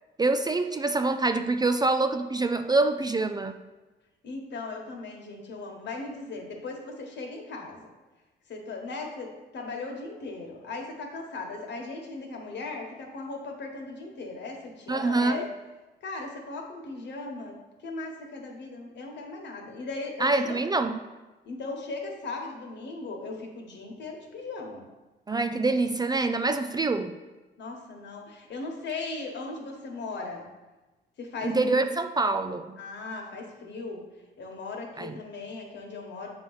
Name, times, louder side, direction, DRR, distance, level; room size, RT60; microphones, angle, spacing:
voice 1, 0.2-3.6 14.9-15.4 20.2-21.0 25.3-27.1 31.4-32.7 35.0-35.1, right 3 dB, 20° right, 8 dB, 0.3 m, -25 dB
voice 2, 4.2-7.9 8.5-15.5 16.0-17.6 17.8-20.6 21.4-24.8 27.6-30.5 31.2-31.7 32.8-34.0 34.4-36.3, left 3 dB, 65° left, 2 dB, 1.4 m, -38 dB
7.2 x 3.0 x 5.5 m, 1.2 s
cardioid pair, 90°, 20 cm